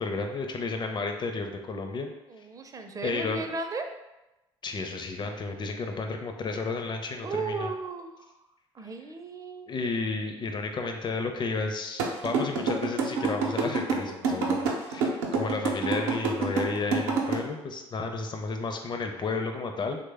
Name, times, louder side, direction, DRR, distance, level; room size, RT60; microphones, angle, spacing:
voice 1, 0.0-2.1 3.0-3.5 4.6-7.7 9.7-20.0, left 3 dB, 35° left, 5 dB, 0.5 m, -32 dB
voice 2, 2.3-3.9 7.2-8.1 8.7-9.7, right 3 dB, 25° right, 5 dB, 0.4 m, -35 dB
sound 1, 12.0-17.3, right 5 dB, 85° right, 0.6 m, -26 dB
3.2 x 2.1 x 3.3 m, 0.98 s
hypercardioid pair, 65°, 13 cm